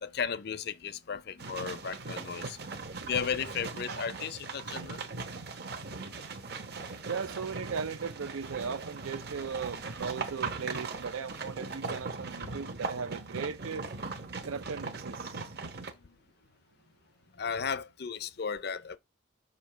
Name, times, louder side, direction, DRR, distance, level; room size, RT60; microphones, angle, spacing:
voice 1, 0.0-2.6 3.1-5.0 16.0-16.1 17.3-19.0, left 6 dB, 50° left, 0.5 m, -35 dB
sound 1, 1.4-15.9, right 4 dB, 50° right, 0.9 m, -39 dB
voice 2, 7.0-13.9 14.5-15.4, right 5 dB, 85° right, 0.5 m, -37 dB
6.5 x 2.8 x 5.5 m
head